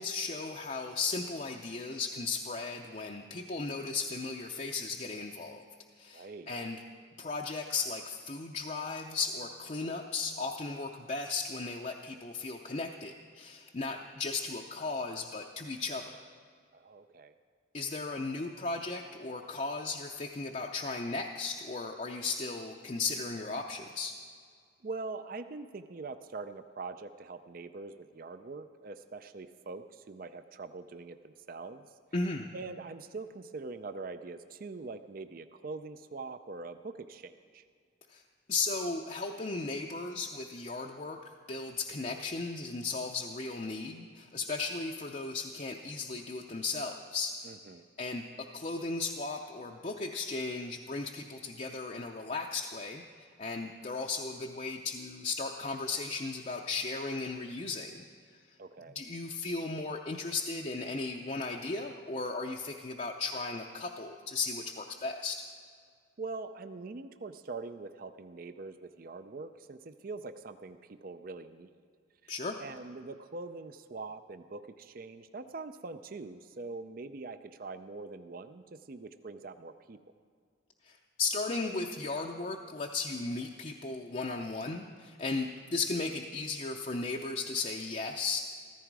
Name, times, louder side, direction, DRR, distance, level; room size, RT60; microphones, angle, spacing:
voice 1, 0.0-5.6 6.0-6.8 7.2-16.2 17.7-24.1 32.1-32.5 38.1-38.2 38.5-41.2 41.5-47.5 48.0-48.2 48.5-58.1 58.9-65.4 72.3-72.6 80.8-88.4, left 3 dB, 35° left, 1 dB, 0.6 m, -36 dB
voice 2, 6.1-6.5 16.7-17.3 24.8-31.9 32.5-37.6 47.4-47.9 58.6-59.0 66.2-71.7 72.2-72.3 72.6-80.0, right 3 dB, 45° right, 10 dB, 0.5 m, -43 dB
15.0 x 14.5 x 4.7 m, 2.1 s
head